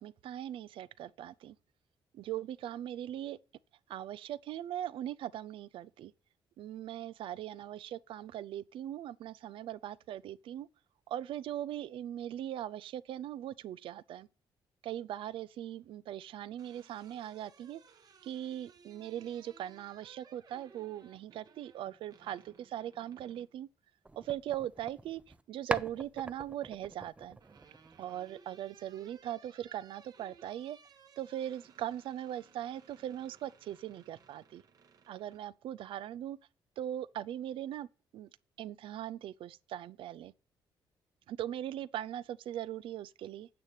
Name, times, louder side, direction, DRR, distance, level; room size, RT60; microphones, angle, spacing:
voice 1, 0.0-1.6 2.1-3.4 3.9-6.1 6.6-10.7 11.1-14.3 14.8-17.8 18.2-23.7 24.2-25.2 25.5-27.4 28.0-30.8 31.2-34.6 35.1-36.4 36.8-37.9 38.1-38.3 38.6-40.3 41.3-43.5, right 11 dB, 80° right, 0.5 m, -40 dB
sound 1, 16.3-23.5 25.0-25.7 26.9-35.4, right 6 dB, 45° right, 1.1 m, -61 dB
sound 2, 24.1-25.4 25.7-28.3, right 2 dB, 15° right, 0.5 m, -42 dB
9.3 x 6.7 x 8.8 m
cardioid pair, 130°, 9 cm